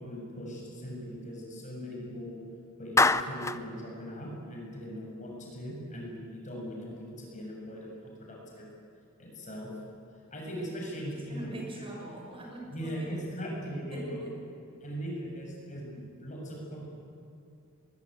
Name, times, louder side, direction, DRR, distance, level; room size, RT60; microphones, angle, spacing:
voice 1, 0.0-2.4 2.8-8.7 9.2-9.7 10.3-11.6 12.7-14.3 14.8-16.9, equal, 35° left, -1 dB, 7.3 m, -39 dB
Clapping, 3.0-3.6, left 3 dB, 15° left, 0.6 m, -24 dB
voice 2, 10.9-13.2 13.9-14.4 14.7-15.0, right 1 dB, 25° right, -1 dB, 6.2 m, -43 dB
23.5 x 21.5 x 9.4 m, 2.6 s
head